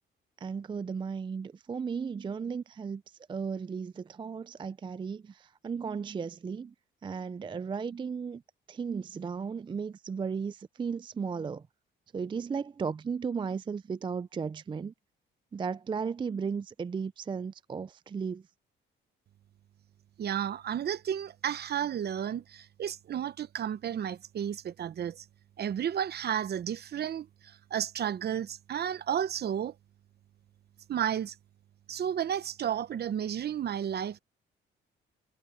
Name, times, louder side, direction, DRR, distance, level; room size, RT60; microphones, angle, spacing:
voice 1, 0.4-6.7 7.0-8.4 8.7-11.6 12.1-14.9 15.5-18.4, right 6 dB, 25° right, 0.4 m, -35 dB
voice 2, 20.2-25.2 25.6-29.7 30.9-31.3 31.9-34.2, right 9 dB, 55° right, 0.9 m, -32 dB
cardioid pair, 90°, 20 cm